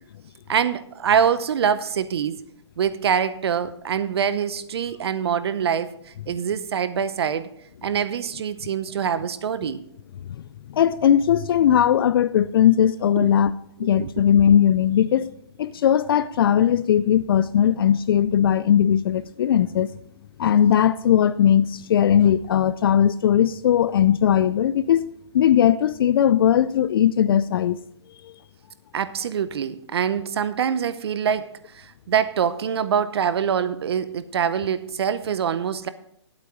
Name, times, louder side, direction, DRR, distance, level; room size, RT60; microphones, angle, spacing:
voice 1, 0.5-2.4 2.8-7.5 7.8-9.8 13.2-13.3 14.0-14.2 28.9-35.9, right 8 dB, 60° right, 0.6 m, -24 dB
voice 2, 10.7-15.3 15.6-19.9 20.4-27.8 28.2-28.3, left 9 dB, 55° left, 0.4 m, -19 dB
11.0 x 8.3 x 4.8 m
hypercardioid pair, 145°, 15 cm